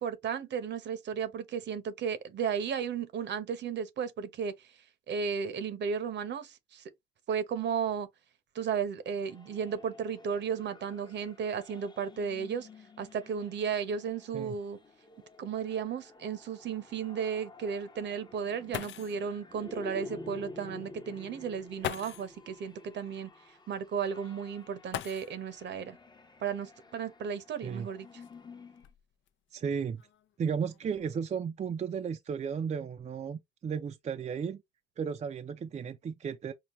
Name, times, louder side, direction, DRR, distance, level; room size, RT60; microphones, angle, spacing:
voice 1, 0.0-4.7 5.1-6.8 7.3-8.1 8.5-12.7 13.0-14.8 15.4-23.3 23.7-26.0 26.4-28.2, right 7 dB, 60° right, 0.9 m, -34 dB
sound 1, 9.1-28.9, left 2 dB, 20° left, 0.8 m, -51 dB
sound 2, 14.8-14.9 15.3-15.4 16.0-16.1 18.4-18.5 18.7-19.3 20.6-20.7 21.8-22.4 24.9-25.6 27.0-27.1 27.8-29.3 30.0-30.3 30.7-31.1, left 10 dB, 70° left, 0.5 m, -41 dB
voice 2, 29.5-30.0 30.4-34.6 35.0-36.5, right 6 dB, 35° right, 0.4 m, -34 dB
5.7 x 2.1 x 3.0 m
cardioid pair, 90°, 20 cm